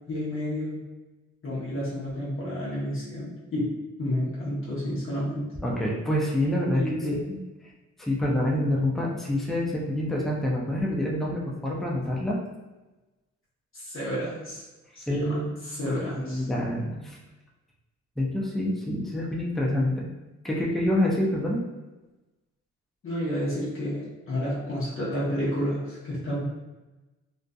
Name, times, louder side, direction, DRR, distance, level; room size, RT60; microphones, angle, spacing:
voice 1, 0.1-0.8 1.4-3.7 4.0-5.5 6.7-7.2 13.7-14.6 14.9-16.5 23.0-26.4, equal, 45° left, -9 dB, 1.0 m, -30 dB
voice 2, 5.6-6.8 7.2-7.3 7.6-7.7 8.0-12.4 15.1-15.5 16.2-17.2 18.2-20.1 20.4-21.6, left 1 dB, ahead, -3 dB, 0.4 m, -27 dB
2.5 x 2.5 x 2.3 m, 1.1 s
cardioid pair, 105°, 29 cm